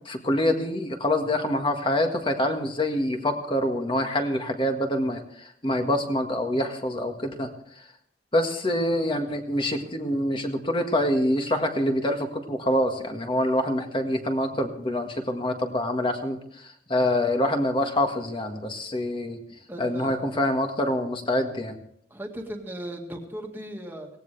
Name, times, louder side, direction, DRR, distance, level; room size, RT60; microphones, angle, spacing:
voice 1, 0.1-7.5 8.3-19.4 19.8-21.8, left 1 dB, 30° left, 4 dB, 1.7 m, -26 dB
voice 2, 19.7-20.2 22.1-24.1, right 1 dB, 10° right, 1 dB, 1.9 m, -37 dB
18.0 x 17.5 x 3.4 m, 0.66 s
head